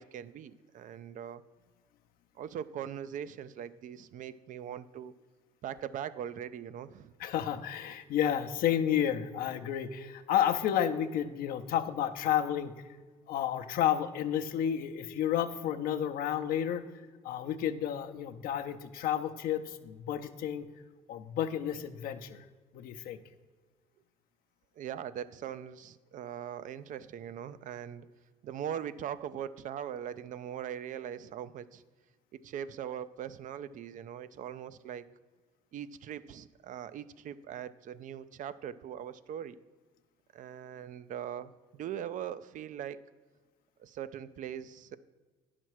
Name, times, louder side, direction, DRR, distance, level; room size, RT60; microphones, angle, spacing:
voice 1, 0.0-1.4 2.4-5.1 5.6-7.1 24.8-28.1 28.4-31.8 32.3-35.1 35.7-39.6 40.3-43.0 43.8-45.0, right 9 dB, 55° right, 15 dB, 0.5 m, -41 dB
voice 2, 7.2-12.7 13.3-16.9 17.2-20.7 21.1-22.4 22.7-23.2, left 10 dB, 65° left, 7 dB, 0.7 m, -31 dB
9.9 x 5.9 x 4.7 m, 1.4 s
hypercardioid pair, 65°, 16 cm